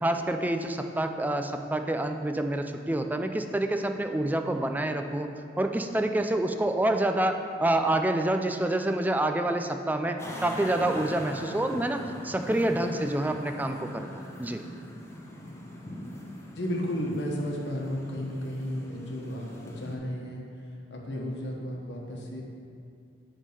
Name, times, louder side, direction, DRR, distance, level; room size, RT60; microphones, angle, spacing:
voice 1, 0.0-5.3 5.6-14.6, right 1 dB, 10° right, 6 dB, 0.4 m, -27 dB
sound 1, 10.2-20.0, left 1 dB, 15° left, 0.9 m, -42 dB
voice 2, 16.6-20.4 20.9-22.4, equal, 75° left, -1 dB, 1.2 m, -33 dB
8.3 x 3.7 x 6.6 m, 2.4 s
head